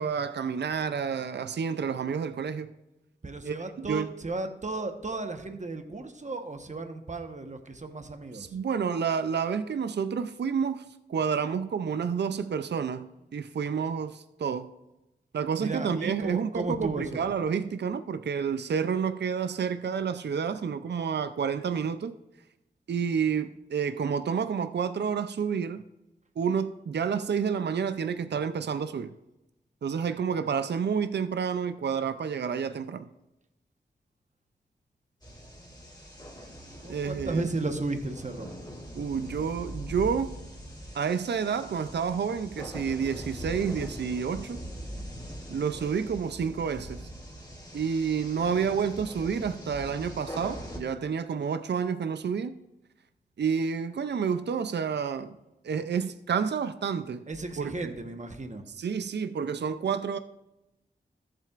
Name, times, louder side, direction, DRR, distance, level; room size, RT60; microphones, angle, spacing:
voice 1, 0.0-2.7 3.4-4.1 8.3-14.7 15.3-22.2 22.9-25.8 26.4-29.1 29.8-33.1 36.9-37.5 39.0-40.3 40.9-44.6 45.5-47.1 47.7-52.5 53.4-55.3 55.6-57.2 57.6-57.9 58.8-60.2, right 6 dB, 70° right, 0.5 m, -29 dB
voice 2, 3.2-8.6 15.6-17.2 36.5-38.5 57.3-58.6, right 3 dB, 40° right, 1.2 m, -34 dB
sound 1, 35.2-50.8, equal, 20° left, 2.7 m, -42 dB
14.0 x 7.6 x 2.5 m
cardioid pair, 50°, 18 cm